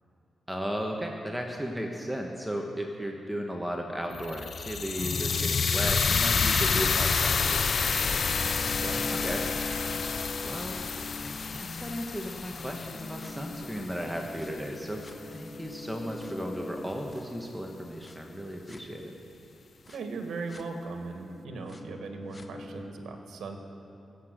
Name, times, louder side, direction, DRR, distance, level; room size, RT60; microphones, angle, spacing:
voice 1, 0.5-8.2 9.2-9.4 10.4-10.8 11.2-15.0 15.3-19.1, equal, 5° right, 1 dB, 1.3 m, -35 dB
sound 1, 4.1-14.3, left 5 dB, 55° left, 0.5 m, -29 dB
sound 2, 5.3-12.0 12.5-18.2 18.7-18.8 19.9-20.0 20.5-20.6 21.1-22.9, left 2 dB, 30° left, 1.1 m, -42 dB
voice 2, 8.7-9.2 19.9-23.6, right 4 dB, 80° right, 4 dB, 1.7 m, -38 dB
17.0 x 8.3 x 7.6 m, 2.9 s
cardioid pair, 75°, 0 cm